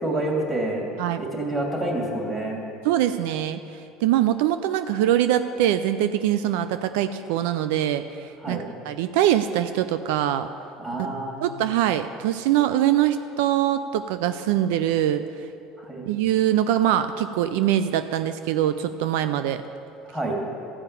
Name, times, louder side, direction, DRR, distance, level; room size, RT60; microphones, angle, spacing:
voice 1, 0.0-0.8 1.2-2.6 8.4-8.6 10.8-11.6 15.8-16.0 19.2-19.3 20.0-20.4, right 1 dB, 10° right, -2 dB, 2.8 m, -28 dB
voice 2, 2.8-10.5 11.4-15.2 16.1-19.6, right 11 dB, 80° right, 11 dB, 0.4 m, -23 dB
13.5 x 5.6 x 8.3 m, 2.8 s
supercardioid pair, 100°, 0 cm